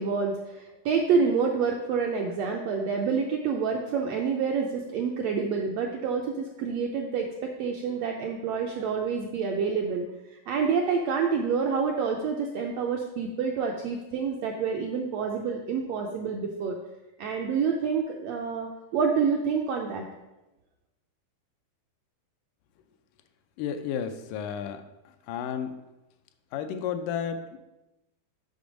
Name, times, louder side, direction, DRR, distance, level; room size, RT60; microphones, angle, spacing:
voice 1, 0.0-10.1 10.5-16.7 17.2-20.0, right 5 dB, 80° right, 1 dB, 1.5 m, -28 dB
voice 2, 23.6-24.8 25.3-25.8 26.5-27.6, left 8 dB, 85° left, 8 dB, 2.2 m, -32 dB
6.8 x 6.1 x 5.0 m, 0.99 s
omnidirectional pair, 3.7 m